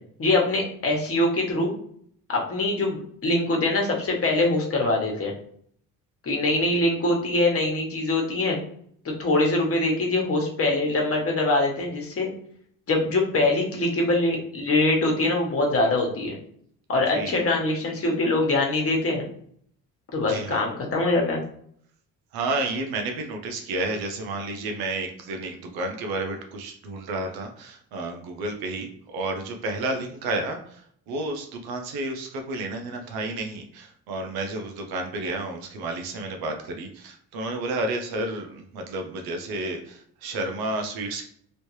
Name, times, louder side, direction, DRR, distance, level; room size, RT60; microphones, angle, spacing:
voice 1, 0.2-1.7 2.3-5.3 6.2-8.6 9.0-12.3 12.9-16.4 16.9-19.2 20.1-21.4, left 2 dB, 40° left, 0 dB, 1.3 m, -23 dB
voice 2, 17.1-17.4 20.2-20.6 22.3-41.3, right 2 dB, 90° right, 5 dB, 0.8 m, -31 dB
3.2 x 2.7 x 3.1 m, 0.63 s
cardioid pair, 95°, 36 cm